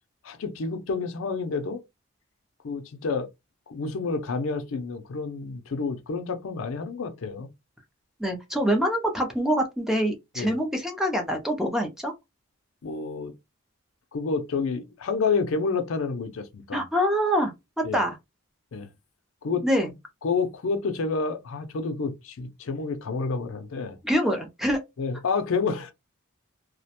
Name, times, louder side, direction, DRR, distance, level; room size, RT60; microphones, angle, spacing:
voice 1, 0.2-1.8 2.6-3.3 3.7-7.5 10.4-10.6 12.8-13.3 14.1-16.8 17.8-18.0 18.7-18.9 19.4-19.6 20.2-24.0 25.0-25.9, left 4 dB, 65° left, 0.4 m, -29 dB
voice 2, 8.2-12.1 16.7-17.5 17.9-18.2 19.6-19.9 24.0-24.8, equal, ahead, 0.4 m, -25 dB
2.4 x 2.1 x 2.8 m
head